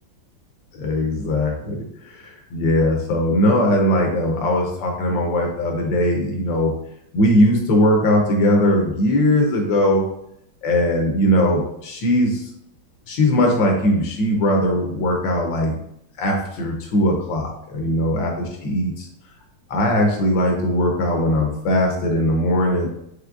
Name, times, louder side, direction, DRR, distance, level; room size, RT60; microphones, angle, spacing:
voice 1, 0.7-6.7 7.1-10.1 10.6-12.4 13.1-15.8 16.2-19.1 19.7-22.9, left 1 dB, 75° left, 2 dB, 1.4 m, -20 dB
5.1 x 3.2 x 2.3 m, 0.74 s
omnidirectional pair, 2.2 m